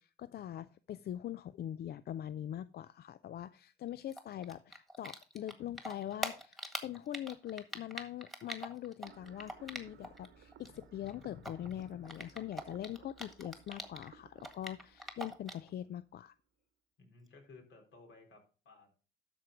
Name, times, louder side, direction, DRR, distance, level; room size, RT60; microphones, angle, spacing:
voice 1, 0.0-16.4, left 11 dB, 55° left, 0.4 m, -43 dB
Typing, 4.1-10.3 10.5-14.1 14.4-15.7, right 1 dB, ahead, 1.7 m, -43 dB
sound 1, 9.1-16.1, right 7 dB, 65° right, 1.0 m, -60 dB
voice 2, 17.0-19.0, left 3 dB, 70° left, 3.6 m, -58 dB
12.5 x 4.6 x 5.1 m
cardioid pair, 90°, 20 cm